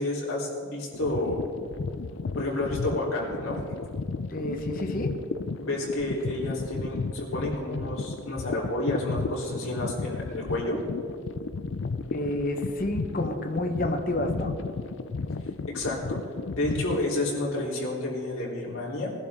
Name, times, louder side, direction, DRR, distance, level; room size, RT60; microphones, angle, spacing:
voice 1, 0.0-1.4 2.4-3.6 5.6-10.8 15.7-16.2 16.5-19.1, left 1 dB, 80° left, -5 dB, 3.6 m, -30 dB
sound 1, 0.9-17.0, left 4 dB, 60° left, 0.5 m, -34 dB
voice 2, 4.3-5.1 12.1-14.5, left 1 dB, 40° left, 4 dB, 1.2 m, -29 dB
20.5 x 11.5 x 3.7 m, 2.3 s
head